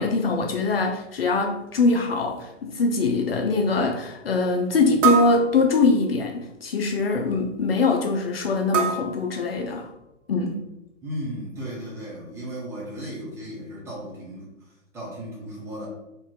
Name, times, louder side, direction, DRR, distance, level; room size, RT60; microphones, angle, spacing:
voice 1, 0.0-9.9 10.3-10.6, left 3 dB, 50° left, 2 dB, 0.5 m, -23 dB
sound 1, 1.7-1.8 2.4-2.5 3.1-3.2 5.0-6.2 8.7-10.0, right 6 dB, 75° right, 0.7 m, -27 dB
voice 2, 11.0-14.5 14.9-15.9, equal, 5° right, -7 dB, 0.9 m, -35 dB
2.9 x 2.6 x 3.8 m, 0.91 s
figure-of-eight pair, 120°, 38 cm